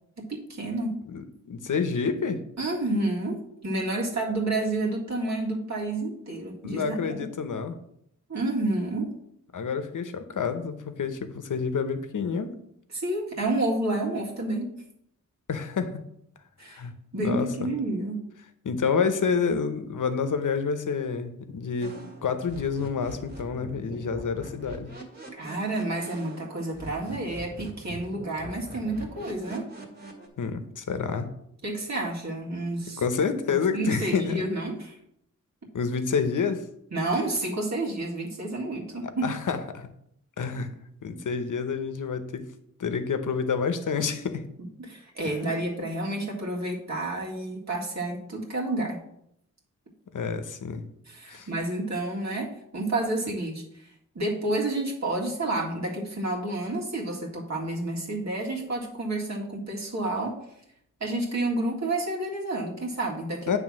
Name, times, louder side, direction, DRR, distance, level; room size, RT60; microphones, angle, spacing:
voice 1, 0.2-1.0 2.6-7.3 8.3-9.1 12.9-14.8 16.6-16.8 17.1-18.2 25.4-29.7 31.6-33.0 33.5-35.0 36.9-39.3 44.8-49.0 51.1-53.9 54.2-60.4 61.0-63.6, right 2 dB, 60° right, -2 dB, 1.9 m, -30 dB
voice 2, 1.1-2.4 6.6-7.7 9.5-12.5 15.5-16.0 16.7-16.9 17.2-17.7 18.6-22.0 22.2-24.9 30.4-31.3 33.0-34.5 35.7-36.6 39.0-39.9 40.4-40.7 41.0-42.4 42.8-44.4 50.1-50.8 51.3-51.5 63.5-63.6, left 5 dB, 75° left, 9 dB, 0.8 m, -28 dB
sound 1, 21.8-30.3, right 1 dB, 30° right, 1.8 m, -43 dB
8.9 x 3.4 x 6.2 m, 0.74 s
wide cardioid pair, 95°, 31 cm